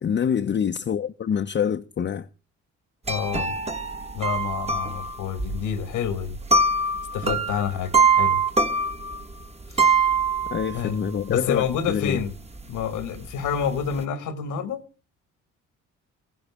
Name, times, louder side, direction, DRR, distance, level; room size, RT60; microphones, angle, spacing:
voice 1, 0.0-2.3 10.5-12.2, left 8 dB, 35° left, 0.7 m, -26 dB
voice 2, 3.1-3.6 4.1-6.4 7.1-8.4 9.7-10.0 10.7-12.3 12.7-14.8, left 7 dB, 90° left, 1.6 m, -28 dB
sound 1, 3.1-10.9 11.4-11.5 11.7-12.3 12.6-14.0, right 4 dB, 20° right, 1.4 m, -23 dB
17.5 x 15.0 x 3.6 m
cardioid pair, 90°, 30 cm